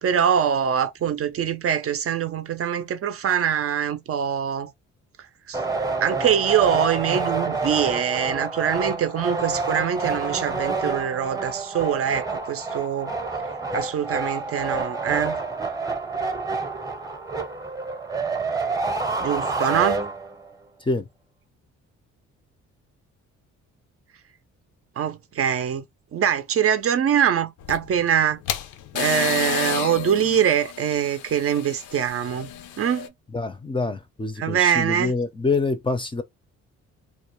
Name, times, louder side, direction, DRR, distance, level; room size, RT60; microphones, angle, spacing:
voice 1, 0.0-4.7 5.5-5.6 6.0-13.1 13.7-15.4 19.2-20.0 25.0-25.8 26.1-28.4 28.9-32.5 32.8-33.1 34.4-35.1, right 8 dB, 50° right, 0.5 m, -23 dB
sound 1, 5.5-20.5, right 3 dB, 10° right, 0.8 m, -28 dB
sound 2, 27.6-33.1, left 10 dB, 80° left, 0.5 m, -31 dB
voice 2, 33.3-36.2, left 3 dB, 15° left, 0.5 m, -26 dB
2.4 x 2.2 x 2.9 m
cardioid pair, 90°, 30 cm